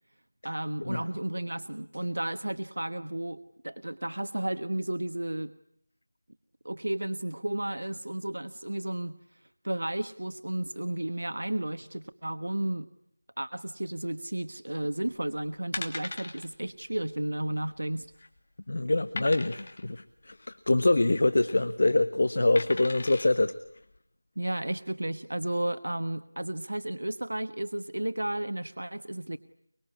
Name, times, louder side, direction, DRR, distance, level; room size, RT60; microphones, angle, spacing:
voice 1, 0.4-3.4 3.6-5.5 6.6-9.1 9.6-12.9 13.4-18.1 24.4-29.4, right 1 dB, 80° right, 10 dB, 1.2 m, -33 dB
sound 1, 15.1-15.3 15.7-16.5 16.8-17.0 17.2-17.3 17.9-18.4 19.2-19.8 21.2-21.5 22.6-23.3 23.9-24.0, left 2 dB, 35° left, 2.7 m, -38 dB
voice 2, 18.7-23.6, left 2 dB, 50° left, 12 dB, 1.1 m, -25 dB
24.0 x 23.5 x 9.9 m, 0.71 s
figure-of-eight pair, 175°, 0 cm